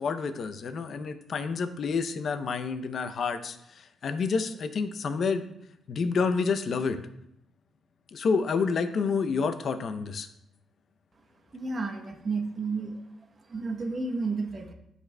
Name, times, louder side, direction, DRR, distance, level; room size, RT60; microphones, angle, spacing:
voice 1, 0.0-3.6 4.0-5.4 5.9-7.0 8.1-10.3, left 5 dB, 50° left, 9 dB, 0.6 m, -28 dB
voice 2, 11.5-12.9 13.5-14.7, right 3 dB, 35° right, 4 dB, 0.9 m, -31 dB
11.5 x 4.1 x 2.2 m, 0.79 s
cardioid pair, 110°, 0 cm